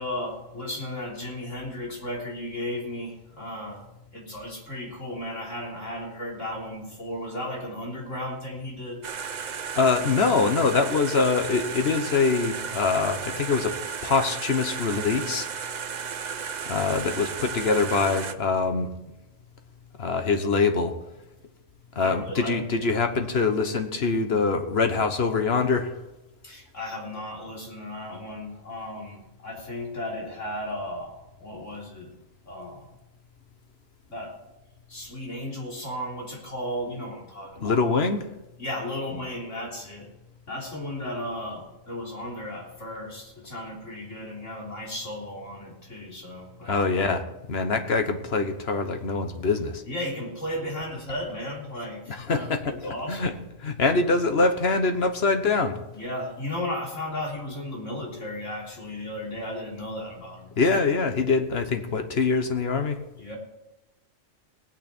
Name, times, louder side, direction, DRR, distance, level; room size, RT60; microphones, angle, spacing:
voice 1, 0.0-3.8 4.1-9.0 22.0-22.6 26.4-32.1 32.5-32.9 34.1-34.4 34.9-37.8 38.6-40.1 40.5-46.8 49.9-52.5 52.8-53.4 55.9-60.5 63.2-63.4, left 1 dB, 70° left, -3 dB, 3.8 m, -35 dB
sound 1, 9.0-18.3, right 6 dB, 45° right, 0.6 m, -34 dB
voice 2, 9.8-13.8 14.0-15.5 16.7-18.9 20.0-21.0 21.9-26.0 37.6-38.3 46.6-49.8 52.1-53.3 53.6-55.8 60.6-63.0, left 4 dB, 55° left, 7 dB, 1.3 m, -24 dB
18.5 x 8.8 x 4.4 m, 0.96 s
omnidirectional pair, 1.3 m